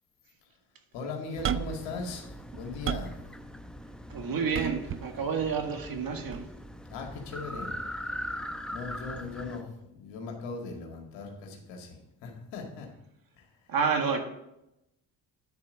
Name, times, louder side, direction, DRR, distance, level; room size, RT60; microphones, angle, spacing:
voice 1, 0.9-3.2 6.9-7.8 8.7-12.9 13.4-13.5, left 4 dB, 85° left, 2 dB, 2.1 m, -39 dB
sound 1, 1.4-9.6, equal, ahead, 0.7 m, -41 dB
sound 2, 1.4-1.9 2.4-3.2 4.5-5.1 6.3-6.5, right 9 dB, 30° right, 0.4 m, -32 dB
voice 2, 4.1-6.4 13.7-14.2, right 5 dB, 55° right, 5 dB, 1.8 m, -29 dB
10.5 x 4.4 x 6.3 m, 0.86 s
supercardioid pair, 80°, 43 cm